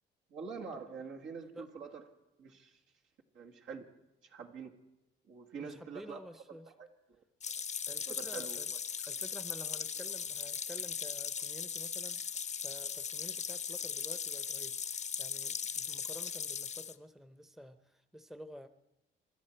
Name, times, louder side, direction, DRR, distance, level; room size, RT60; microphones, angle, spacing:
voice 1, 0.3-2.0 2.4-2.8 3.3-3.9 4.2-4.7 5.3-6.2 6.5-6.9 8.2-8.6, right 5 dB, 75° right, 0 dB, 1.9 m, -45 dB
voice 2, 1.3-1.7 5.6-6.7 7.9-8.7 9.1-12.3 12.6-18.7, equal, ahead, 11 dB, 0.7 m, -51 dB
sound 1, 7.4-16.9, left 7 dB, 35° left, 0.6 m, -38 dB
25.5 x 12.5 x 4.5 m, 0.92 s
cardioid pair, 90°, 20 cm